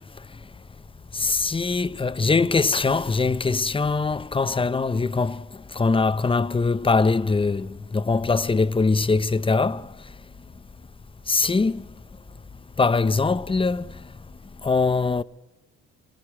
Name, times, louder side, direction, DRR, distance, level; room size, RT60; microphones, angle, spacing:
voice 1, 1.2-5.4 5.8-7.7 7.9-9.8 11.3-11.8 12.8-13.8 14.6-15.2, left 4 dB, 20° left, 0.7 m, -22 dB
26.0 x 17.5 x 8.6 m
cardioid pair, 90°, 30 cm